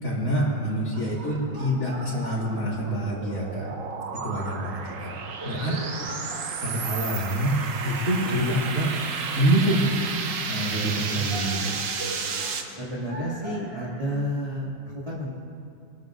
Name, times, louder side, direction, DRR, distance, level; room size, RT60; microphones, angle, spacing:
voice 1, 0.0-3.7 4.1-5.1 5.4-6.1 6.6-7.5 7.8-8.9 9.3-9.9 10.5-11.7, right 1 dB, 50° left, -6 dB, 3.1 m, -26 dB
sound 1, 0.9-14.2, right 2 dB, 35° right, 1.3 m, -43 dB
sound 2, 2.5-12.6, right 5 dB, 55° right, 1.1 m, -32 dB
voice 2, 8.2-8.6 12.6-14.8 15.0-15.3, equal, 20° right, -7 dB, 2.4 m, -31 dB
26.0 x 13.0 x 2.6 m, 2.5 s
omnidirectional pair, 1.9 m